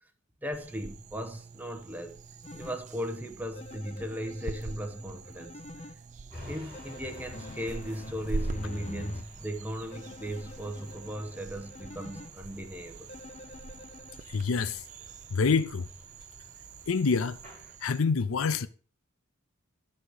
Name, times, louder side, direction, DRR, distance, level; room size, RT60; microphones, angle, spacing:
voice 1, 0.4-2.2 2.5-5.6 6.5-13.1, equal, 10° right, 0.9 m, -37 dB
sound 1, 0.5-18.0, right 4 dB, 35° right, 0.4 m, -44 dB
sound 2, 2.4-2.8 3.6-5.9 6.7-9.2 9.9-12.3 13.1-14.2, left 2 dB, 35° left, 0.6 m, -46 dB
sound 3, 6.3-17.8, left 1 dB, 10° left, 5.8 m, -52 dB
voice 2, 14.3-14.8 15.3-15.9 16.9-17.4 17.8-18.7, left 5 dB, 85° left, 0.5 m, -26 dB
11.0 x 4.3 x 6.5 m
head